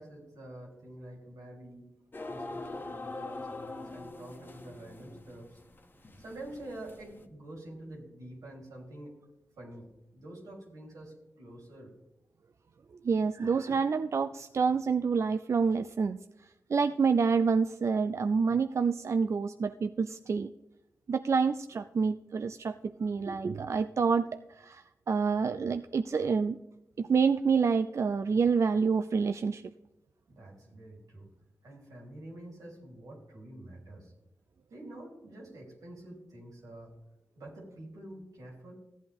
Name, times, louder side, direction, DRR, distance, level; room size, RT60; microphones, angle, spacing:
voice 1, 0.0-1.9 2.3-5.6 6.2-9.2 9.6-11.9 30.3-31.3 31.6-34.1 34.7-37.0 37.4-38.7, right 1 dB, 90° right, -1 dB, 3.4 m, -47 dB
sound 1, 2.1-7.3, left 2 dB, 35° left, 1.3 m, -43 dB
voice 2, 13.0-16.2 16.7-20.5 21.1-26.6 27.0-29.6, right 5 dB, 60° right, 10 dB, 0.4 m, -28 dB
14.5 x 8.5 x 3.5 m, 0.94 s
cardioid pair, 50°, 6 cm